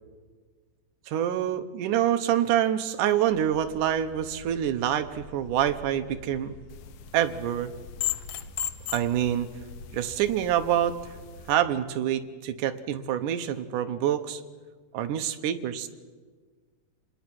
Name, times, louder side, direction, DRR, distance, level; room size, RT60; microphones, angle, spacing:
voice 1, 1.1-6.5 7.1-7.7 8.9-9.5 9.9-11.0 11.5-14.4 14.9-15.9, right 10 dB, 80° right, 9 dB, 2.5 m, -26 dB
sound 1, 3.3-11.6, left 1 dB, 60° left, 2.8 m, -48 dB
sound 2, 6.7-11.5, left 12 dB, 85° left, 1.3 m, -37 dB
27.0 x 20.0 x 6.1 m, 1.5 s
omnidirectional pair, 3.7 m